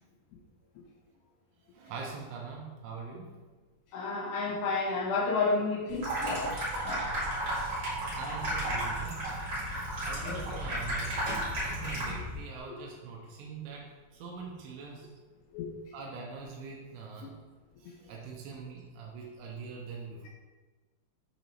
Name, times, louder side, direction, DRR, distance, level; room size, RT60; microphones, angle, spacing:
voice 1, 1.7-3.4 8.1-9.4 9.7-11.4 11.7-15.1 15.9-17.4 17.8-20.3, right 5 dB, 85° right, -2 dB, 3.2 m, -43 dB
voice 2, 3.9-6.5 6.8-7.0 7.6-7.7 10.3-10.4 12.7-12.8 15.5-15.7, left 3 dB, 85° left, -1 dB, 2.4 m, -31 dB
Water tap faucet / Sink (filling or washing), 5.9-12.4, right 1 dB, 55° right, 1.5 m, -33 dB
7.6 x 3.0 x 5.4 m, 1.3 s
omnidirectional pair, 5.6 m